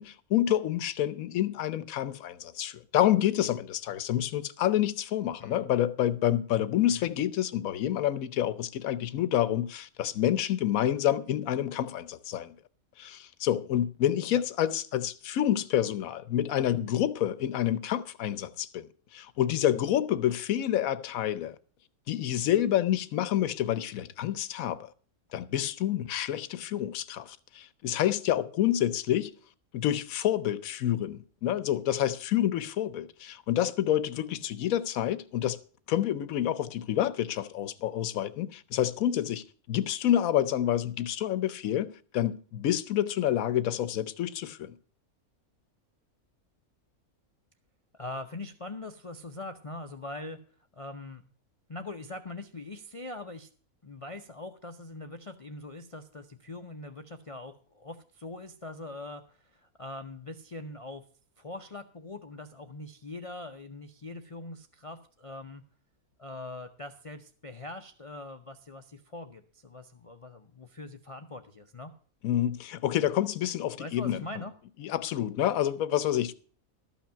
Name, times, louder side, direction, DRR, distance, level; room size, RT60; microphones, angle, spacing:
voice 1, 0.0-12.5 13.0-18.9 19.1-21.5 22.1-24.9 25.3-29.3 29.7-35.6 35.9-44.7 72.2-74.2 74.8-76.3, left 11 dB, 70° left, 1.1 m, -28 dB
voice 2, 47.9-50.4 50.7-51.2 51.7-53.5 53.8-61.0 61.4-65.6 66.2-71.9 73.8-74.5, left 2 dB, 40° left, 0.5 m, -42 dB
13.0 x 5.9 x 7.4 m
omnidirectional pair, 1.5 m